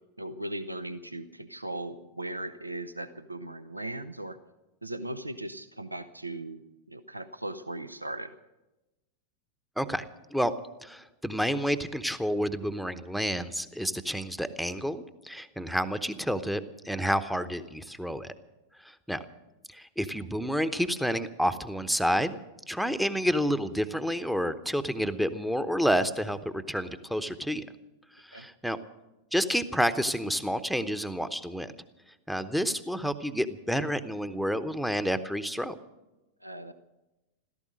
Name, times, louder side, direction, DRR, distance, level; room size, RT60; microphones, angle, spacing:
voice 1, 0.2-4.4 4.8-6.6 6.9-8.3 28.3-28.5 36.4-36.7, right 1 dB, 85° right, 12 dB, 0.6 m, -38 dB
voice 2, 9.8-10.1 10.3-10.5 10.8-18.3 18.8-19.2 19.7-22.4 22.7-27.6 28.3-28.8 29.3-31.7 32.3-35.8, equal, ahead, 12 dB, 0.8 m, -29 dB
15.5 x 14.0 x 6.4 m, 1.0 s
figure-of-eight pair, 90°, 0 cm